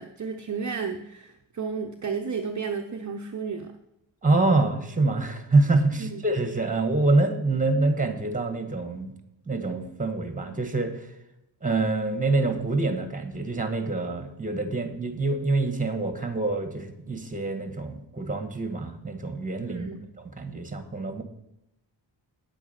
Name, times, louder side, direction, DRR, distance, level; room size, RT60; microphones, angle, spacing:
voice 1, 0.0-3.7 6.0-6.2 19.7-20.0, right 5 dB, 40° right, 3 dB, 0.8 m, -32 dB
voice 2, 4.2-9.1 9.5-11.1 11.6-19.9 20.2-21.2, right 2 dB, 15° right, 7 dB, 1.7 m, -26 dB
9.2 x 8.5 x 5.8 m, 0.86 s
cardioid pair, 80°, 45 cm